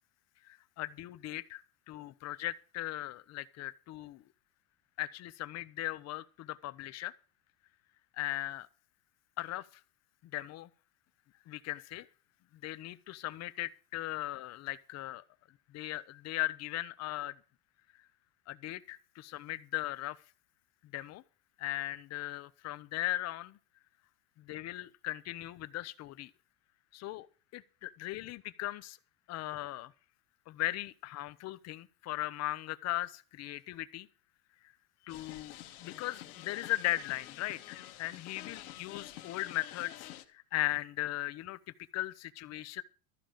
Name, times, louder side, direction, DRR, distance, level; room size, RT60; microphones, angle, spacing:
voice 1, 0.4-4.2 5.0-7.1 8.1-8.7 9.4-9.7 10.3-10.7 11.5-12.1 12.6-15.2 15.7-17.4 18.5-20.2 20.9-21.2 21.6-23.6 24.4-26.3 26.9-27.3 27.5-29.0 29.3-29.9 30.5-34.1 35.0-41.6 41.9-42.8, left 16 dB, 35° left, 0.8 m, -38 dB
sound 1, 35.1-40.2, left 13 dB, 85° left, 1.8 m, -48 dB
14.0 x 5.0 x 9.0 m
supercardioid pair, 135°, 43 cm